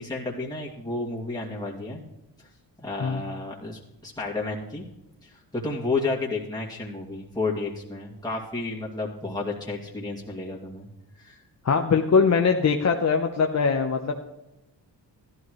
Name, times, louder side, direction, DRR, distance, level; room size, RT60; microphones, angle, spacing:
voice 1, 0.0-2.0 2.4-2.5 2.8-4.8 5.2-10.9 11.1-11.4, left 3 dB, 10° left, -4 dB, 2.3 m, -31 dB
voice 2, 11.6-14.3, left 5 dB, 40° left, 4 dB, 0.9 m, -22 dB
14.0 x 12.5 x 3.2 m, 0.90 s
cardioid pair, 60°, 42 cm